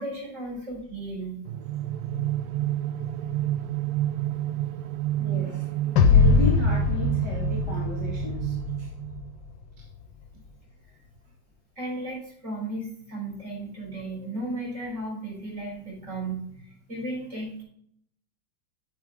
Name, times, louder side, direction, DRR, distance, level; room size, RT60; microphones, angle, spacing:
voice 1, 0.0-1.5 4.6-4.7 5.3-6.1 11.8-17.6, right 2 dB, 40° right, -3 dB, 4.5 m, -35 dB
sound 1, 1.4-9.4, right 13 dB, 75° right, 0.9 m, -29 dB
voice 2, 5.2-5.7 6.0-8.9, left 1 dB, 15° right, -3 dB, 1.6 m, -34 dB
sound 2, 6.0-9.2, left 6 dB, 80° left, 1.5 m, -22 dB
9.0 x 7.1 x 3.5 m, 0.64 s
omnidirectional pair, 2.1 m